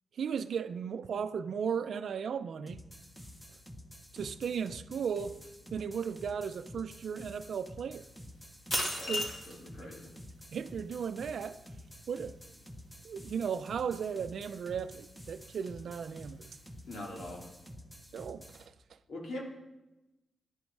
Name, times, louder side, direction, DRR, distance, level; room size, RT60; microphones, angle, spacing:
voice 1, 0.2-2.8 4.1-5.4 5.7-8.1 9.0-9.2 10.5-11.6 12.1-12.4 13.0-16.5 18.1-18.7, right 7 dB, 60° right, 0.6 m, -36 dB
sound 1, 2.7-18.7, equal, 5° left, 1.0 m, -50 dB
sound 2, 8.1-17.7, left 1 dB, 25° left, 2.8 m, -42 dB
voice 2, 9.4-10.1 16.9-17.4 19.1-19.4, left 1 dB, 70° left, 3.1 m, -42 dB
17.5 x 11.0 x 4.7 m
wide cardioid pair, 150°, 0 cm